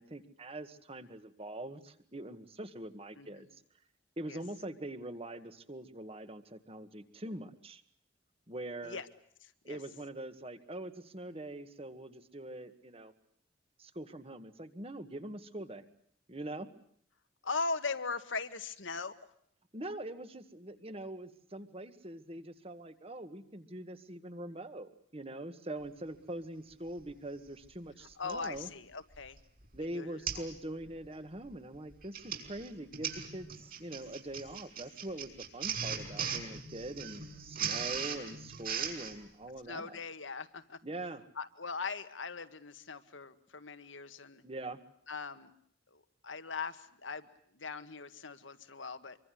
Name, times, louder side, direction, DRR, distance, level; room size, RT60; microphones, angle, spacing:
voice 1, 0.0-3.5 4.2-7.8 8.5-9.0 9.6-13.1 13.8-15.8 16.3-16.7 19.7-28.7 29.7-40.0 40.8-41.2 44.4-44.8, right 1 dB, 30° right, 10 dB, 1.9 m, -43 dB
voice 2, 3.2-3.5 4.3-4.4 8.8-9.1 9.4-9.8 17.4-19.1 28.2-29.4 29.8-30.4 37.9-38.2 39.7-40.8 41.4-44.4 45.1-45.5 45.9-49.2, left 4 dB, 90° left, 10 dB, 1.9 m, -40 dB
Printer, 27.1-27.2 28.3-28.6 29.1-29.4 29.6-29.8 30.3-30.5 30.9-31.1 31.9-39.2, right 7 dB, 50° right, 6.1 m, -38 dB
25.5 x 24.5 x 7.8 m, 0.67 s
head